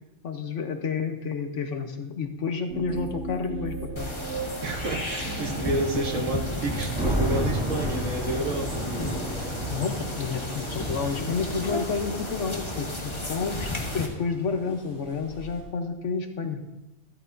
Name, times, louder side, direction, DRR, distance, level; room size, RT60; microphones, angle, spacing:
voice 1, 0.2-4.1 9.7-16.6, left 5 dB, 70° left, 5 dB, 1.4 m, -30 dB
sound 1, 2.7-14.3, right 4 dB, 55° right, 1.1 m, -39 dB
sound 2, 4.0-14.1, left 1 dB, 25° left, 1.2 m, -33 dB
voice 2, 4.6-9.1, right 1 dB, 75° right, 2 dB, 1.7 m, -30 dB
sound 3, 6.9-15.6, equal, 5° right, 3.7 m, -34 dB
14.0 x 12.5 x 2.7 m, 1.0 s
omnidirectional pair, 1.3 m